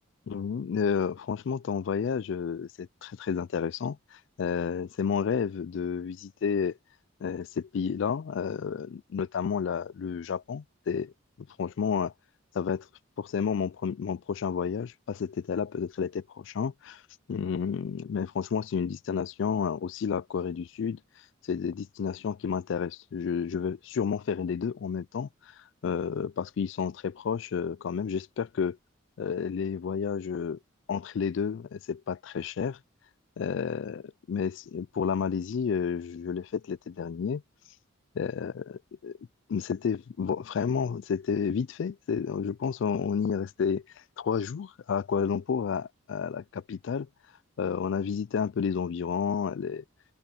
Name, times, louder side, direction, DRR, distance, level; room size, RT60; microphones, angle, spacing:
voice 1, 0.3-6.8 7.2-11.1 11.4-12.1 12.5-12.9 13.2-17.0 17.3-21.0 21.4-25.3 25.8-28.8 29.2-30.6 30.9-32.8 33.4-37.4 38.2-39.2 39.5-43.8 44.2-47.1 47.6-49.8, left 6 dB, 60° left, 0.3 m, -31 dB
head